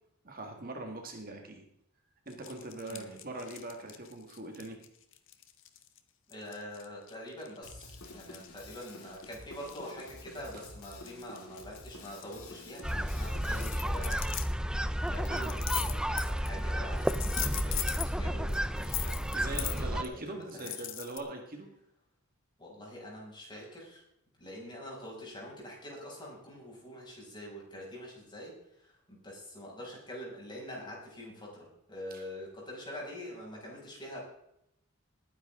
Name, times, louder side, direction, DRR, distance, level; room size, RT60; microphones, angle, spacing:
voice 1, 0.2-1.6 2.3-4.8 15.3-15.6 19.3-21.7 32.1-32.2, right 2 dB, 40° right, 3 dB, 1.9 m, -41 dB
sound 1, 2.3-6.0 6.3-10.0 10.3-12.8 13.3-14.5 15.1-16.6 16.9-18.1 18.5-20.1 20.5-21.2, left 13 dB, 60° left, 1.4 m, -40 dB
voice 2, 2.9-3.2 6.3-14.2 15.0-20.7 22.6-24.0 24.4-34.2, equal, 20° left, -3 dB, 6.5 m, -45 dB
Drum kit, 7.6-13.6, left 2 dB, 80° left, 4.4 m, -49 dB
sound 2, 12.8-20.0, equal, 5° right, 0.5 m, -32 dB
20.0 x 10.0 x 3.8 m, 0.78 s
head